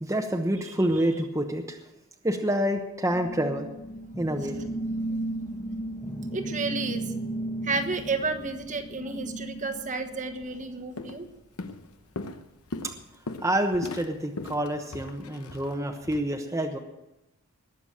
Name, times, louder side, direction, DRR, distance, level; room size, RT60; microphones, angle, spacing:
voice 1, 0.0-1.8 2.2-3.7 4.2-4.6 12.8-12.9 13.4-16.8, right 1 dB, 15° right, 2 dB, 1.0 m, -27 dB
voice 2, 0.6-1.0 6.3-7.1 7.6-11.2, right 3 dB, 35° right, 7 dB, 1.3 m, -32 dB
sound 1, 3.1-10.9, right 1 dB, 20° left, 1.2 m, -35 dB
Walk footsteps, 10.4-10.6 11.0-11.3 11.6-16.2, left 2 dB, 70° left, 1.0 m, -39 dB
20.5 x 7.2 x 7.4 m, 0.95 s
head